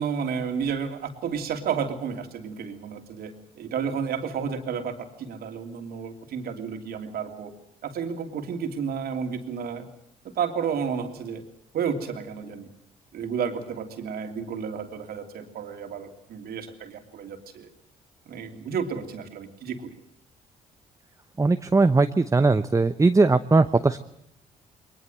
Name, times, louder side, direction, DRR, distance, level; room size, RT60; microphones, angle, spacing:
voice 1, 0.0-7.5 7.8-9.9 10.3-11.4 11.7-12.7 13.1-17.7 18.3-20.0, right 6 dB, 65° right, 5 dB, 2.9 m, -31 dB
voice 2, 21.4-24.0, right 3 dB, 20° right, 11 dB, 0.9 m, -19 dB
21.5 x 20.5 x 7.9 m, 0.74 s
hypercardioid pair, 50°, 17 cm